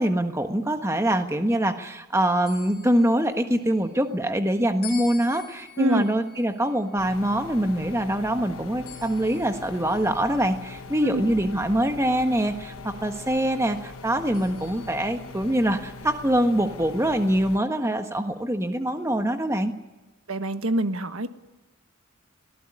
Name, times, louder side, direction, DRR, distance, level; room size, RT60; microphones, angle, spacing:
voice 1, 0.0-19.7, right 1 dB, 15° right, 6 dB, 1.4 m, -24 dB
sound 1, 2.5-4.0 4.8-8.3 8.9-10.6 11.3-11.4 14.3-15.8, left 8 dB, 45° left, 7.8 m, -47 dB
sound 2, 7.0-17.6, left 3 dB, 75° left, 1.2 m, -41 dB
voice 2, 20.3-21.3, equal, 75° right, 9 dB, 1.4 m, -25 dB
24.0 x 18.5 x 9.9 m, 1.1 s
head